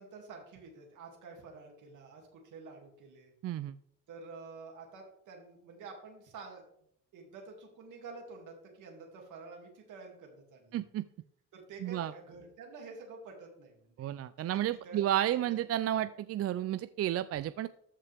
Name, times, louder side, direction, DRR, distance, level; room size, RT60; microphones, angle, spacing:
voice 1, 0.0-3.3 4.1-6.6 7.1-10.8 11.5-15.4 15.9-16.0, right 4 dB, 80° right, 1 dB, 2.6 m, -49 dB
voice 2, 3.4-3.7 10.7-11.0 11.8-12.1 14.0-17.7, right 12 dB, 50° right, 14 dB, 0.4 m, -32 dB
13.5 x 5.8 x 3.5 m, 0.69 s
cardioid pair, 90°, 30 cm